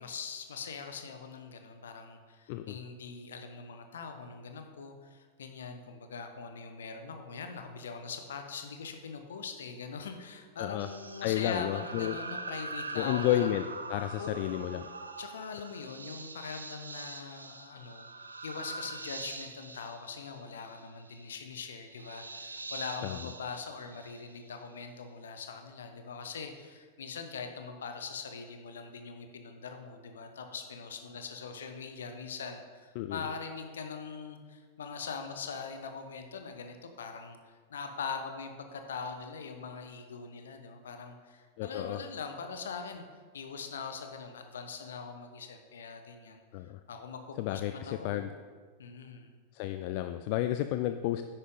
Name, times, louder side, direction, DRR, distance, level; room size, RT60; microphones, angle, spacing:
voice 1, 0.0-13.5 14.2-14.6 15.2-18.1 18.4-43.0 43.3-46.4 46.9-48.4 48.8-49.3, left 5 dB, 65° left, 6 dB, 1.1 m, -42 dB
sound 1, 10.8-24.7, right 3 dB, 80° right, 0.6 m, -43 dB
voice 2, 11.2-12.2 12.9-13.6 13.9-14.9 23.0-23.2 33.0-33.2 41.6-42.0 46.5-46.8 47.4-48.3 49.5-51.2, left 13 dB, 45° left, 9 dB, 0.4 m, -31 dB
10.0 x 9.1 x 3.9 m, 1.5 s
figure-of-eight pair, 90°, 0 cm